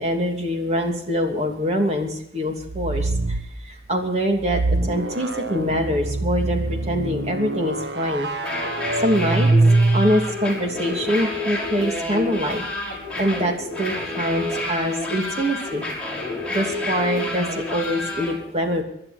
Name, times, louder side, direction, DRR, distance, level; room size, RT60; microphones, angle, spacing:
voice 1, 0.0-8.3 9.0-9.5 9.9-15.8 16.5-18.8, equal, 35° right, 2 dB, 2.9 m, -24 dB
sound 1, 2.6-3.5 4.4-10.4, right 2 dB, 75° right, 1.0 m, -23 dB
sound 2, 8.3-18.3, left 2 dB, 5° left, 5.8 m, -29 dB
25.5 x 11.0 x 4.4 m, 0.73 s
head